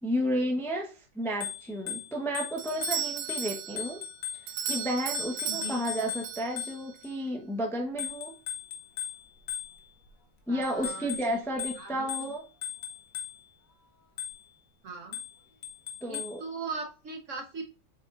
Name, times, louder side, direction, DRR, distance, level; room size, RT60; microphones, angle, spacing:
voice 1, 0.0-4.0 4.7-8.3 10.5-12.5 16.0-16.4, equal, ahead, 1 dB, 0.7 m, -32 dB
Bicycle bell, 1.3-7.1 8.0-10.1 10.6-13.6 14.2-14.6 15.1-16.5, left 9 dB, 75° left, 1.7 m, -39 dB
Doorbell, 2.6-7.0, right 10 dB, 75° right, 1.3 m, -36 dB
voice 2, 5.5-5.8 10.5-12.3 14.8-15.2 16.1-17.6, right 3 dB, 50° right, 3 dB, 1.1 m, -40 dB
7.4 x 5.2 x 2.5 m, 0.33 s
omnidirectional pair, 1.9 m